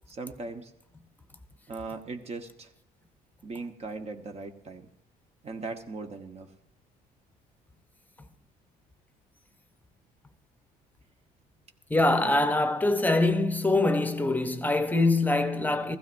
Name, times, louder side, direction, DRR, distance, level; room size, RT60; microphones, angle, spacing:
voice 1, 0.1-0.7 1.7-2.7 3.4-4.9 5.4-6.5, right 3 dB, 40° right, 1.2 m, -39 dB
voice 2, 11.9-16.0, left 2 dB, 10° left, 0.9 m, -24 dB
16.0 x 15.5 x 2.6 m
cardioid pair, 110°, 17 cm